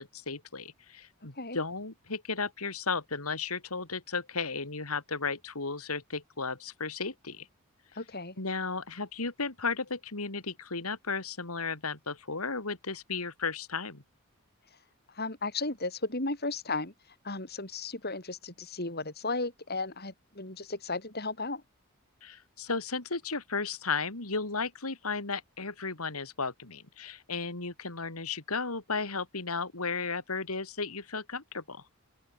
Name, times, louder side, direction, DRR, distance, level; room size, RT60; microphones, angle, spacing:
voice 1, 0.0-7.5 8.4-14.0 22.2-31.8, left 4 dB, 90° left, 3.2 m, -34 dB
voice 2, 7.9-8.4 15.1-16.9 17.2-21.6, left 3 dB, 45° left, 6.6 m, -35 dB
open air
head